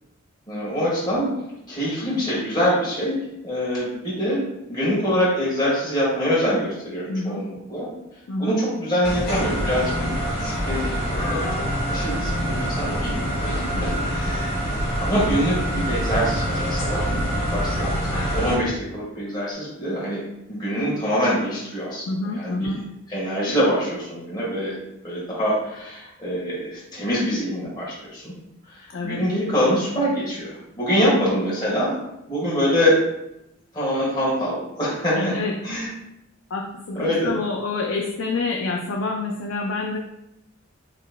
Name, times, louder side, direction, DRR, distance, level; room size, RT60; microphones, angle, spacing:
voice 1, 0.5-1.3 1.7-7.9 8.4-11.6 11.9-13.5 13.8-14.6 15.0-22.0 22.3-22.7 23.1-24.7 25.0-28.3 28.7-32.0 32.3-33.0 33.7-35.3 35.6-35.9 36.9-37.3, equal, 20° left, -8 dB, 1.4 m, -25 dB
voice 2, 7.1-7.4 8.3-8.6 13.7-14.2 22.1-22.8 28.9-29.2 31.0-31.2 35.1-35.5 36.5-40.0, left 3 dB, 70° left, 0 dB, 0.4 m, -27 dB
sound 1, 9.0-18.6, equal, 45° left, 1.5 m, -25 dB
5.8 x 3.1 x 2.2 m, 0.85 s
head